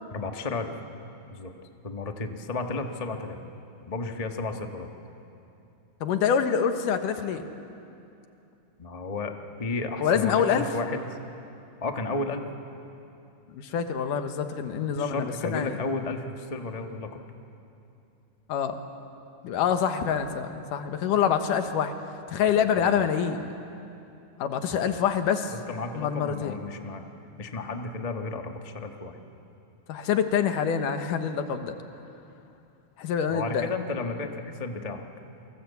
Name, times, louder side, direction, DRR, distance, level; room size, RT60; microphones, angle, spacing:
voice 1, 0.1-0.7 1.3-1.5 1.8-3.4 3.9-4.9 8.8-9.3 9.6-11.0 11.8-12.4 14.9-17.1 20.0-20.1 22.7-23.1 25.5-27.1 27.4-29.2 33.3-35.0, left 3 dB, 35° left, 4 dB, 0.6 m, -33 dB
voice 2, 6.0-7.5 10.0-10.7 13.5-15.8 18.5-18.8 19.4-21.9 22.3-23.5 24.4-25.5 26.0-26.5 29.9-31.8 33.0-33.7, left 7 dB, 85° left, 7 dB, 2.9 m, -26 dB
29.0 x 24.0 x 8.4 m, 2.7 s
omnidirectional pair, 3.6 m